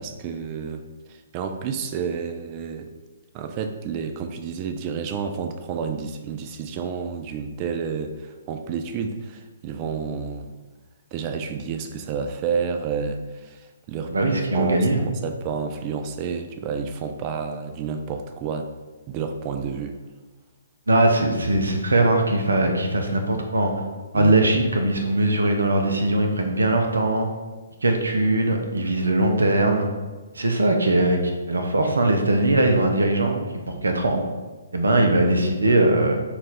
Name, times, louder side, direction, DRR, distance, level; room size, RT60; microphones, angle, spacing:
voice 1, 0.0-2.9 3.3-10.5 11.1-14.1 14.5-18.7 19.1-20.0 24.1-24.3, right 6 dB, 30° right, 7 dB, 0.4 m, -30 dB
voice 2, 14.1-15.0 20.9-23.7 24.1-27.3 27.8-29.9 30.3-31.2 31.5-33.4 33.7-34.2 34.7-36.2, right 2 dB, 75° right, 4 dB, 0.7 m, -20 dB
4.1 x 2.4 x 4.1 m, 1.3 s
figure-of-eight pair, 130°, 0 cm